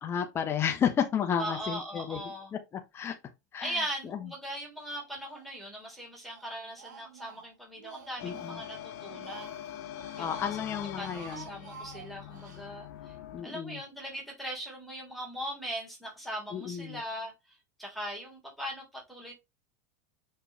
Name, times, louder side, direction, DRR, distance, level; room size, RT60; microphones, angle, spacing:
voice 1, 0.0-2.2 2.9-3.1 3.5-3.7 4.1-4.2 8.2-8.6 10.2-11.5 13.3-13.8 16.5-17.0, left 8 dB, 25° left, 0.9 m, -31 dB
voice 2, 1.4-2.5 3.6-9.6 10.2-10.6 11.0-13.1 13.4-19.3, equal, ahead, 3.4 m, -40 dB
Speech, 4.8-5.5 5.8-8.6 9.0-10.5 10.9-12.6, right 7 dB, 85° right, 1.3 m, -51 dB
sound 1, 8.2-13.4, left 11 dB, 70° left, 1.0 m, -43 dB
6.2 x 4.5 x 3.4 m
supercardioid pair, 120°, 9 cm